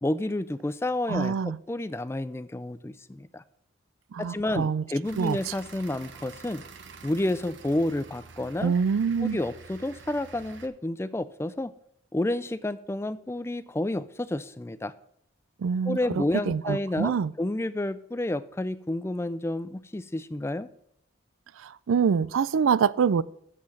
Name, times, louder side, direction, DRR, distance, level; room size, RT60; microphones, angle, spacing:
voice 1, 0.0-3.4 4.2-6.6 7.0-8.7 9.2-11.7 12.1-14.9 15.9-20.7, left 1 dB, 15° left, 15 dB, 0.3 m, -30 dB
voice 2, 1.1-1.6 4.1-4.8 5.2-5.5 8.6-9.4 15.6-17.3 21.6-23.2, right 6 dB, 80° right, 20 dB, 0.4 m, -25 dB
sound 1, 5.0-10.7, right 4 dB, 65° right, 0.9 m, -47 dB
7.7 x 6.4 x 7.1 m, 0.70 s
head